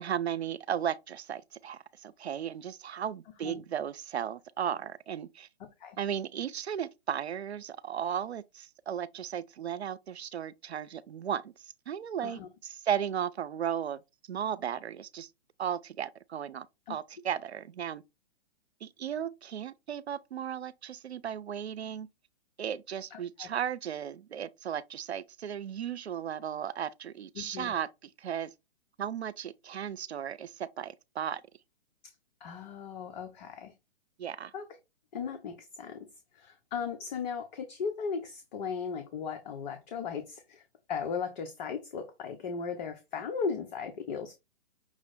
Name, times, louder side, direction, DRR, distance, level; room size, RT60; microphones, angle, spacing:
voice 1, 0.0-5.5 6.0-11.5 11.9-14.0 14.3-15.3 15.6-18.0 18.8-22.1 22.6-28.5 29.0-31.4 34.2-34.5, right 9 dB, 80° right, 0.5 m, -35 dB
voice 2, 23.1-23.5 27.4-27.8 32.0-32.1 32.4-33.7 34.5-34.6 35.1-36.1 36.3-40.6 40.9-44.4, left 6 dB, 45° left, 0.8 m, -37 dB
6.1 x 2.0 x 4.0 m
figure-of-eight pair, 125°, 32 cm